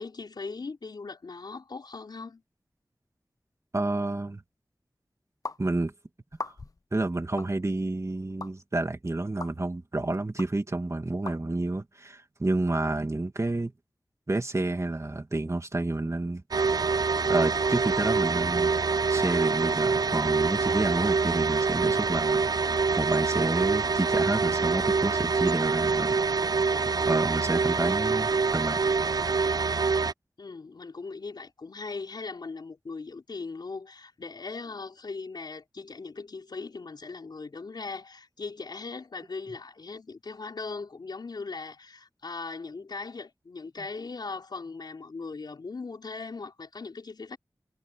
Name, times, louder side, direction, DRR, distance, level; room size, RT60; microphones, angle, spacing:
voice 1, 0.0-2.4 30.4-47.4, left 4 dB, 85° left, 4.7 m, -39 dB
voice 2, 3.7-4.4 5.6-5.9 6.4-6.5 6.9-13.7 14.3-16.4 17.3-18.7 19.1-26.2 27.1-28.8, right 2 dB, 45° right, 2.4 m, -29 dB
sound 1, 5.4-5.6 6.3-6.8 7.4-7.5 8.4-8.5 9.4-9.5 10.4-10.5 11.3-11.4, left 3 dB, 55° left, 0.9 m, -37 dB
sound 2, 16.5-30.1, right 4 dB, 65° right, 0.5 m, -25 dB
cardioid pair, 40°, 7 cm